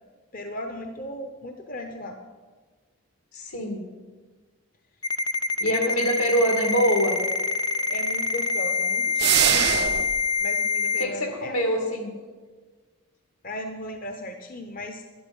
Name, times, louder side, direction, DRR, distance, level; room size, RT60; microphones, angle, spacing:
voice 1, 0.3-2.2 5.7-5.9 7.7-10.0 10.4-11.6 13.4-15.0, left 1 dB, 40° left, 5 dB, 0.7 m, -36 dB
voice 2, 3.3-3.8 5.6-7.2 11.0-12.1, equal, 80° left, 3 dB, 2.5 m, -24 dB
Ringtone, 5.0-11.0, left 4 dB, 20° left, 0.4 m, -25 dB
sound 1, 9.2-10.2, right 12 dB, 45° right, 0.4 m, -22 dB
12.0 x 11.0 x 5.4 m, 1.4 s
head